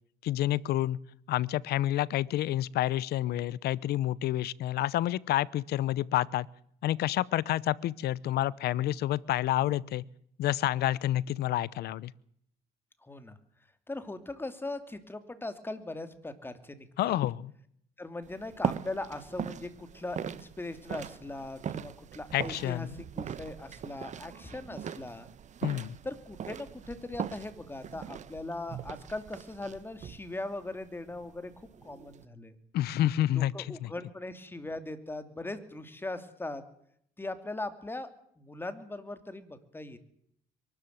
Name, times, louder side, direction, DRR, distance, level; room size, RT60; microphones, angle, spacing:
voice 1, 0.2-1.0 1.3-6.5 6.8-10.0 10.4-12.1 17.0-17.5 22.3-22.9 25.6-26.0 32.7-33.9, left 13 dB, 70° left, 22 dB, 0.8 m, -29 dB
voice 2, 13.0-13.4 13.9-17.2 18.0-22.9 23.2-25.3 26.0-32.5 33.3-36.6 37.2-38.1 38.4-40.0, left 2 dB, 15° left, 10 dB, 2.7 m, -40 dB
sound 1, 18.2-32.3, right 8 dB, 45° right, 1.1 m, -40 dB
23.5 x 13.0 x 9.4 m, 0.69 s
cardioid pair, 110°, 17 cm